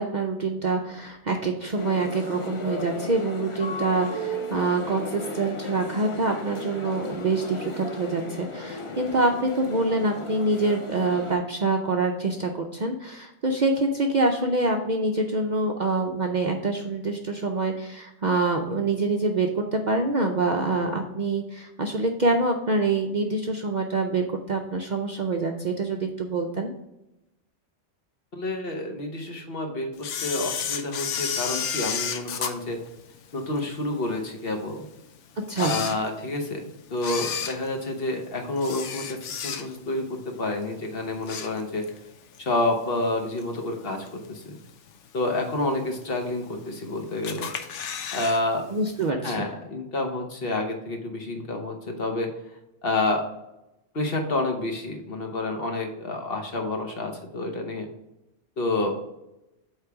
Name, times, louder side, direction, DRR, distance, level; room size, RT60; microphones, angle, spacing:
voice 1, 0.0-26.7 35.4-35.8 48.7-49.5, right 3 dB, 50° right, 2 dB, 0.6 m, -26 dB
sound 1, 1.8-11.3, left 2 dB, 35° left, 0.6 m, -35 dB
voice 2, 28.3-32.8 33.3-34.9 35.6-41.9 42.4-44.6 45.1-47.5 48.1-48.7 49.2-52.4 52.8-53.2 53.9-57.9 58.6-59.0, left 2 dB, 55° left, 3 dB, 1.2 m, -29 dB
Camera, 30.0-33.6 34.1-34.2 34.9-35.0 35.4-36.5 36.9-40.0 40.3-40.6 41.0-42.0 42.3-42.4 43.4-43.5 44.1-44.5 44.9-45.0 45.2-45.3 45.4-45.5 46.3-46.8 47.2-48.4 48.7-48.8 49.0-49.1, left 7 dB, 80° left, 1.0 m, -32 dB
8.2 x 3.3 x 5.8 m, 0.90 s
omnidirectional pair, 1.2 m